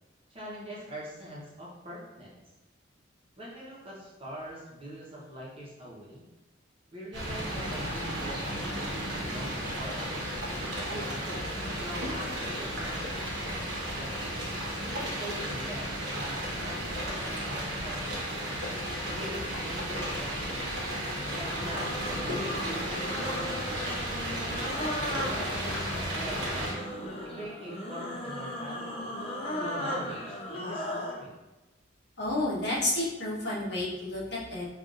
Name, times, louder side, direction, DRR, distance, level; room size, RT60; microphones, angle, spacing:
voice 1, 0.3-2.4 3.4-6.3 6.9-10.2 10.7-13.1 13.9-14.2 14.7-18.3 19.1-20.7 21.3-23.6 24.4-26.8 27.2-29.2 29.6-31.4, right 1 dB, 30° right, -6 dB, 1.0 m, -43 dB
sound 1, 7.1-26.7, equal, 65° right, 1.1 m, -34 dB
sound 2, 21.3-31.2, left 1 dB, 30° left, 0.5 m, -36 dB
voice 2, 32.2-34.7, left 2 dB, 60° left, -6 dB, 1.2 m, -30 dB
5.3 x 2.6 x 2.5 m, 1.1 s
head